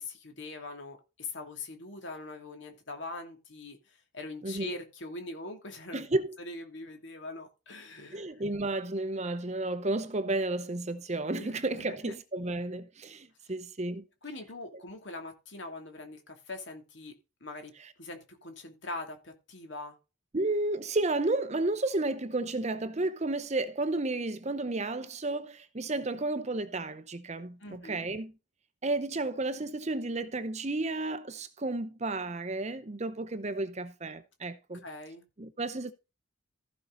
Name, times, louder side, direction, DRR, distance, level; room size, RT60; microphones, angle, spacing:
voice 1, 0.0-6.0 6.4-8.4 11.4-12.1 14.2-17.1 17.4-17.7 18.0-20.0 27.6-28.1 34.8-35.2, left 2 dB, 60° left, 2.7 m, -42 dB
voice 2, 4.4-4.8 5.9-6.4 8.1-14.0 20.3-28.3 28.8-34.8 35.4-35.9, right 2 dB, 35° right, 0.8 m, -32 dB
15.0 x 5.6 x 4.0 m
head